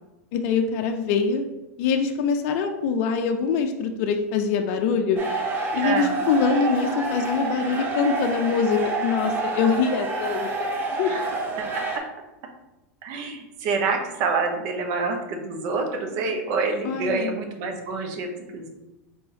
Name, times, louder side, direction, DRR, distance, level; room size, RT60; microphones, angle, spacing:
voice 1, 0.3-1.4 1.8-5.2 5.7-10.7 11.0-11.1 16.8-17.3, left 5 dB, 60° left, 5 dB, 0.5 m, -24 dB
sound 1, 5.2-12.0, right 2 dB, 25° right, 0.9 m, -28 dB
voice 2, 5.8-6.2 11.1-11.3 11.6-12.0 13.0-18.7, right 4 dB, 55° right, 4 dB, 0.9 m, -27 dB
4.6 x 3.4 x 3.0 m, 1.0 s
hypercardioid pair, 100°, 8 cm